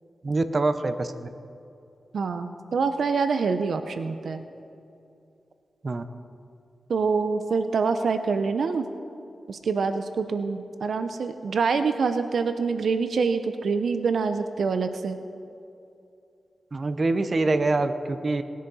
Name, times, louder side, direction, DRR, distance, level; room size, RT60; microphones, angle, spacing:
voice 1, 0.2-1.3 5.8-6.0 16.7-18.4, right 2 dB, 50° right, 10 dB, 0.7 m, -25 dB
voice 2, 2.1-4.4 6.9-8.9 9.5-15.2, right 5 dB, 80° right, 9 dB, 0.6 m, -26 dB
19.5 x 10.0 x 4.1 m, 2.6 s
cardioid pair, 65°, 0 cm